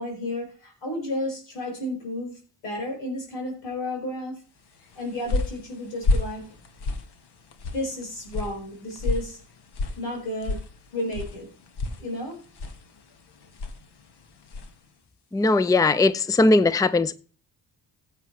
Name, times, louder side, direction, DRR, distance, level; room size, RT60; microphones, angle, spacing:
voice 1, 0.0-4.4 4.8-6.5 7.7-9.4 10.0-10.6 10.9-11.5 12.0-12.4, left 1 dB, 85° left, 5.1 m, -32 dB
sound 1, 4.7-14.8, left 2 dB, 60° left, 1.5 m, -32 dB
voice 2, 15.3-17.1, left 2 dB, 10° left, 0.5 m, -19 dB
15.5 x 8.1 x 3.2 m
hypercardioid pair, 45°, 44 cm